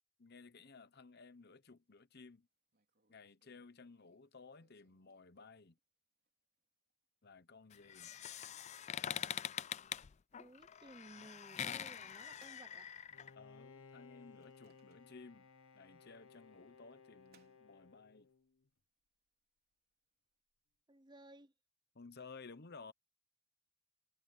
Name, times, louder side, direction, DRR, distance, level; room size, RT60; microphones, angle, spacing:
voice 1, 0.2-2.5 3.1-5.8 7.2-8.1 13.3-15.5 15.7-18.3 21.9-22.9, left 4 dB, 45° left, 1.0 m, -56 dB
Microwave oven, 1.9-2.0 2.3-2.4 2.7-5.8 6.2-6.3 6.6-6.9 7.4-7.5 8.2-9.8 10.4-10.5 11.7-13.5 13.9-15.4 15.7-15.8 16.7-18.1, right 5 dB, 45° right, 3.8 m, -75 dB
sound 1, 7.7-13.3, left 9 dB, 30° left, 0.3 m, -44 dB
voice 2, 10.4-13.0 20.9-21.5, right 2 dB, 20° right, 0.7 m, -58 dB
Bowed string instrument, 13.1-18.7, left 5 dB, 70° left, 1.5 m, -61 dB
head